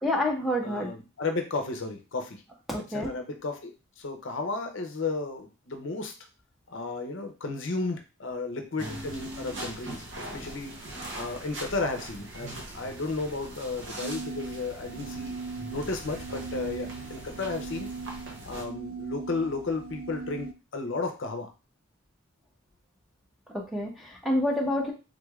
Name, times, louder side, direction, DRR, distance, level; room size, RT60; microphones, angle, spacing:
voice 1, 0.0-0.9 2.7-3.1 23.5-24.9, left 1 dB, ahead, -2 dB, 0.7 m, -28 dB
voice 2, 0.6-2.4 2.9-6.1 6.7-10.8 11.1-15.3 15.7-17.9 18.4-21.5, left 3 dB, 60° left, 4 dB, 0.6 m, -33 dB
sound 1, 8.8-18.7, right 1 dB, 55° right, 0.8 m, -41 dB
sound 2, 14.0-20.5, right 4 dB, 75° right, 0.3 m, -39 dB
3.8 x 3.1 x 2.3 m, 0.31 s
head